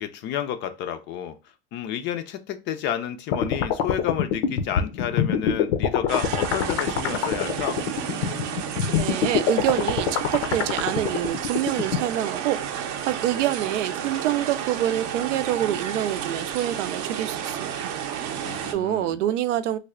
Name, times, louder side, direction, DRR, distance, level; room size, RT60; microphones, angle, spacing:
voice 1, 0.0-1.4 1.7-7.8 18.4-19.2, left 10 dB, 35° left, 0.4 m, -31 dB
sound 1, 3.3-12.0, left 8 dB, 70° left, 0.6 m, -24 dB
sound 2, 6.1-18.7, right 9 dB, 45° right, 0.6 m, -31 dB
voice 2, 9.0-17.9 18.7-19.8, right 12 dB, 90° right, 0.5 m, -26 dB
3.3 x 2.1 x 3.6 m
supercardioid pair, 130°, 35 cm